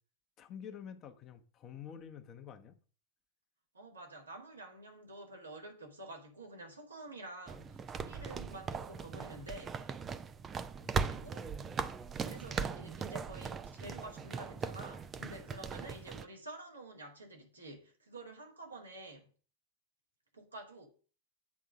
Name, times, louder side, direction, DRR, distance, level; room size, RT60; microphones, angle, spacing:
voice 1, 0.4-2.7 10.8-11.5 15.2-15.4, left 8 dB, 30° left, 1.0 m, -49 dB
voice 2, 3.7-9.9 10.8-11.4 12.1-19.3 20.3-20.9, right 2 dB, 75° right, 2.0 m, -49 dB
sound 1, 7.5-16.3, right 6 dB, 20° right, 0.5 m, -39 dB
8.4 x 3.7 x 6.2 m
figure-of-eight pair, 90°, 0 cm